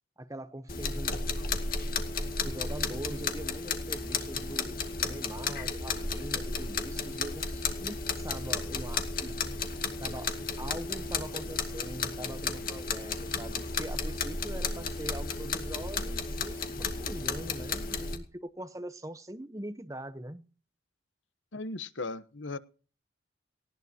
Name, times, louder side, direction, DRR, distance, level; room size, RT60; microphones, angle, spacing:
voice 1, 0.2-1.2 2.4-9.3 10.0-20.5, right 1 dB, 15° right, 0.9 m, -42 dB
sound 1, 0.7-18.2, left 4 dB, 45° left, 2.3 m, -33 dB
voice 2, 21.5-22.6, left 3 dB, 80° left, 1.1 m, -37 dB
19.0 x 18.0 x 2.9 m
head